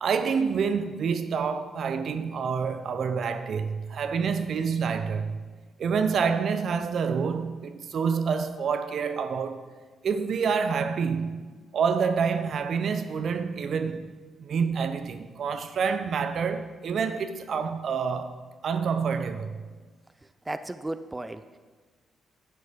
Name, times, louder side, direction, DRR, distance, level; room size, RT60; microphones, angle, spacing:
voice 1, 0.0-5.3 5.8-9.6 10.0-14.1 14.4-19.6, right 6 dB, 60° right, 0.8 m, -27 dB
voice 2, 20.5-21.6, right 2 dB, 20° right, 0.6 m, -35 dB
11.5 x 9.5 x 5.3 m
hypercardioid pair, 45°, 0 cm